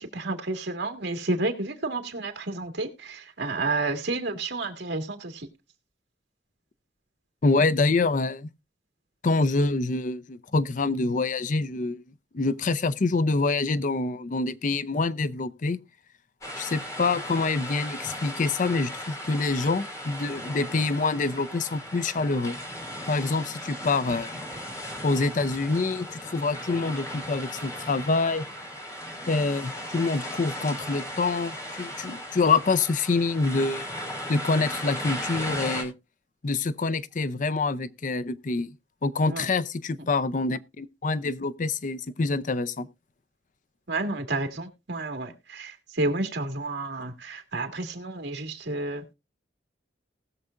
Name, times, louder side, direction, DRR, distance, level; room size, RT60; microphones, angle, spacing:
voice 1, 0.0-5.5 39.3-39.5 43.9-49.1, right 2 dB, 75° right, 2.0 m, -31 dB
voice 2, 7.4-8.5 9.2-12.0 12.3-15.8 16.6-22.6 23.1-24.4 25.0-28.5 29.3-33.9 34.3-35.9 36.4-38.7 39.0-42.9, left 3 dB, 45° left, 0.5 m, -26 dB
sound 1, 16.4-35.8, equal, 20° left, 2.7 m, -37 dB
19.5 x 6.8 x 2.5 m
head